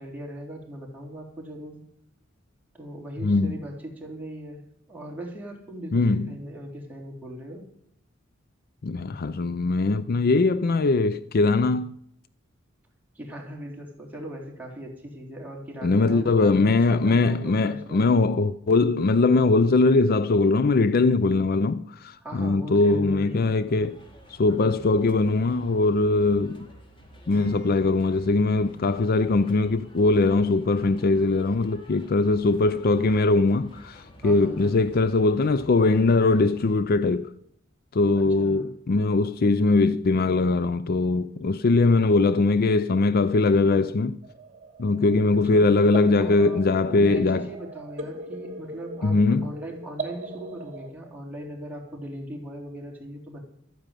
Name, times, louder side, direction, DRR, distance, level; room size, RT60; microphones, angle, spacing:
voice 1, 0.0-1.8 2.7-4.6 4.9-7.7 13.1-18.1 22.2-23.8 24.5-24.8 34.2-34.8 38.2-38.7 45.3-45.7 46.2-53.4, right 1 dB, 10° right, 3.7 m, -39 dB
voice 2, 3.2-3.5 5.9-6.3 8.8-11.9 15.8-24.0 24.3-26.7 27.3-37.3 37.9-44.2 44.8-47.4 49.0-49.5, left 3 dB, 50° left, 0.5 m, -21 dB
sound 1, 23.7-36.8, equal, 25° left, 2.3 m, -50 dB
Acoustic guitar / Strum, 27.3-30.4, left 2 dB, 75° left, 5.1 m, -48 dB
sound 2, 44.2-50.9, right 3 dB, 40° right, 2.5 m, -40 dB
12.5 x 9.8 x 9.1 m
head